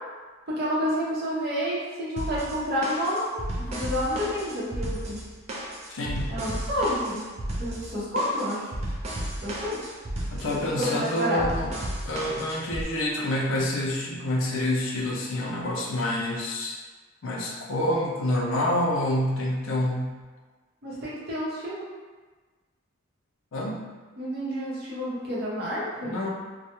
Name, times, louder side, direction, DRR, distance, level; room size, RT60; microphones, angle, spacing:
voice 1, 0.5-3.4 3.7-5.2 6.3-7.2 7.6-8.7 9.4-9.9 10.8-11.4 20.8-21.7 24.2-26.2, equal, 45° right, -7 dB, 0.7 m, -29 dB
sound 1, 2.2-12.8, right 1 dB, 30° right, 0.3 m, -34 dB
voice 2, 5.9-6.3 10.3-11.7 12.0-16.8 17.2-20.2 23.5-23.8 26.0-26.3, left 1 dB, 65° left, -2 dB, 0.4 m, -27 dB
2.2 x 2.0 x 2.8 m, 1.3 s
head